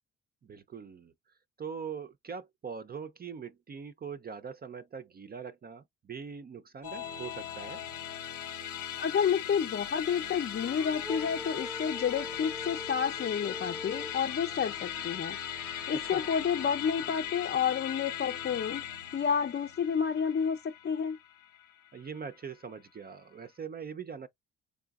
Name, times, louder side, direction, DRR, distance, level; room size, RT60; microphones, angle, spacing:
voice 1, 0.4-1.1 1.6-7.8 15.9-16.3 21.9-24.3, right 6 dB, 30° right, 0.5 m, -42 dB
Musical instrument, 6.8-22.3, left 10 dB, 85° left, 1.2 m, -39 dB
voice 2, 9.0-18.8 19.1-21.2, left 7 dB, 40° left, 0.6 m, -30 dB
sound 1, 9.8-17.3, left 2 dB, ahead, 0.7 m, -45 dB
3.8 x 3.4 x 2.3 m
cardioid pair, 90°, 30 cm